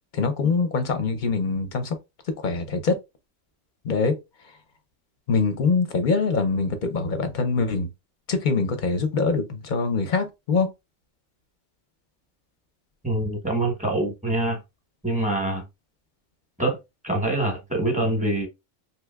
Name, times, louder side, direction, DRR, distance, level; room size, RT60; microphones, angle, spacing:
voice 1, 0.1-2.0 2.4-3.0 3.8-4.2 5.3-7.9 8.3-10.7, left 4 dB, 50° left, 0.6 m, -24 dB
voice 2, 13.0-14.6 15.0-15.7 16.6-16.8 17.0-18.5, right 2 dB, 5° right, 0.8 m, -25 dB
3.5 x 2.8 x 2.3 m
omnidirectional pair, 1.3 m